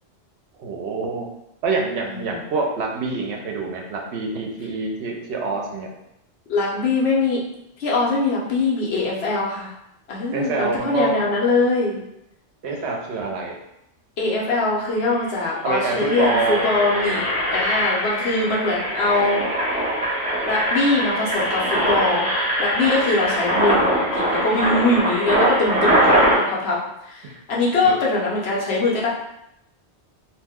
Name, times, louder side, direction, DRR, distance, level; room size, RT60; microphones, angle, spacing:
voice 1, 0.6-1.3 1.6-5.9 10.3-11.2 12.6-13.5 15.6-16.7 17.4-17.6 27.2-27.3 27.8-28.0, right 3 dB, 75° right, 0 dB, 0.9 m, -26 dB
voice 2, 2.0-2.4 6.5-7.4 7.8-9.7 10.1-12.0 14.2-17.2 17.5-19.4 19.8-19.9 20.5-24.0 24.3-26.8 27.1-29.1, left 3 dB, 70° left, -4 dB, 1.0 m, -22 dB
Engine, 15.0-15.2 15.7-26.4, right 1 dB, 10° right, 0.5 m, -22 dB
2.6 x 2.1 x 3.5 m, 0.81 s
omnidirectional pair, 1.1 m